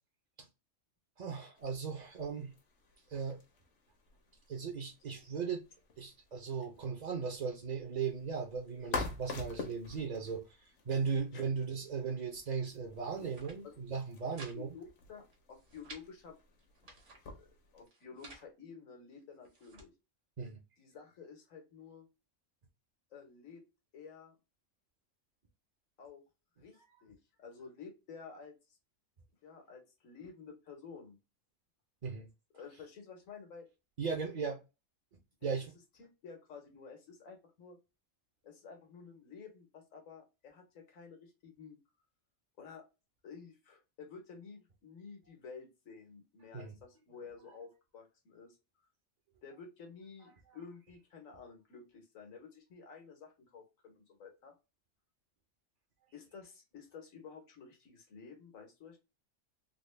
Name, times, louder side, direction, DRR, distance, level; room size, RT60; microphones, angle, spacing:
voice 1, 1.2-2.5 3.1-3.4 4.5-5.6 6.0-14.8 20.4-20.6 32.0-32.3 34.0-34.6 35.4-35.7 46.5-46.7, right 5 dB, 45° right, 0.6 m, -37 dB
sound 1, 1.6-17.9, left 4 dB, 70° left, 1.2 m, -48 dB
sound 2, 13.1-13.6 13.9-14.6 14.8-14.9 15.3-16.0 16.6-17.2 17.9-18.5 19.1-19.9, right 3 dB, 65° right, 1.4 m, -54 dB
voice 2, 14.3-16.4 17.3-19.9 20.8-22.1 23.1-23.6 23.9-24.4 26.0-26.2 26.6-28.5 29.4-31.2 32.5-33.7 35.4-35.5 36.0-37.8 38.4-41.8 42.6-42.8 43.2-48.6 49.4-54.5 56.1-59.0, left 5 dB, 85° left, 1.5 m, -52 dB
3.9 x 2.2 x 3.2 m
omnidirectional pair, 1.4 m